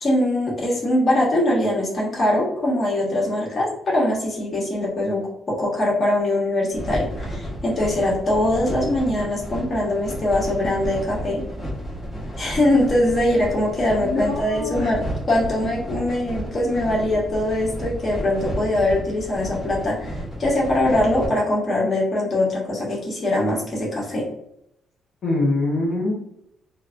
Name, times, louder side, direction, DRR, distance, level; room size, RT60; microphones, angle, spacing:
voice 1, 0.0-11.4 12.4-24.2, left 1 dB, 35° left, -4 dB, 1.2 m, -22 dB
sound 1, 6.7-21.3, equal, ahead, 1.1 m, -32 dB
voice 2, 14.0-14.9 25.2-26.1, left 2 dB, 60° left, -4 dB, 0.9 m, -24 dB
3.1 x 2.1 x 2.5 m, 0.76 s
cardioid pair, 90°, 0 cm